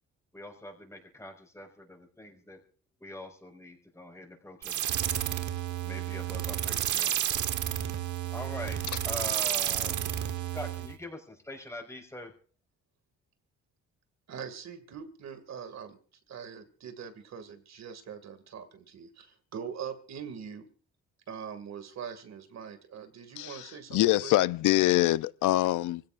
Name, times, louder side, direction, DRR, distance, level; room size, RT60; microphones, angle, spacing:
voice 1, 0.3-2.6 3.0-5.2 5.8-7.2 8.3-10.1 10.5-12.3, left 1 dB, 10° left, 5.3 m, -43 dB
sound 1, 4.6-10.9, right 11 dB, 75° right, 1.3 m, -31 dB
voice 2, 14.3-16.0 16.3-20.7 21.3-24.3, right 7 dB, 60° right, 2.3 m, -42 dB
voice 3, 23.4-26.0, left 16 dB, 80° left, 0.6 m, -25 dB
25.0 x 16.5 x 2.5 m
cardioid pair, 90°, 30 cm